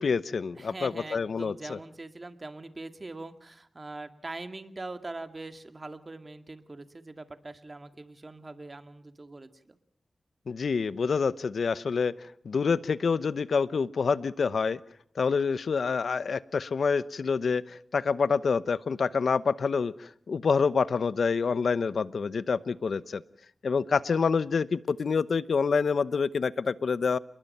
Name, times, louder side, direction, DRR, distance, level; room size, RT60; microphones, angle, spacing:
voice 1, 0.0-1.8 10.5-12.1 12.4-14.8 15.2-23.2 23.6-27.2, left 5 dB, 80° left, 16 dB, 0.9 m, -27 dB
voice 2, 0.6-9.8, right 2 dB, 35° right, 8 dB, 2.2 m, -42 dB
29.0 x 21.5 x 5.6 m, 0.63 s
wide cardioid pair, 75°, 0 cm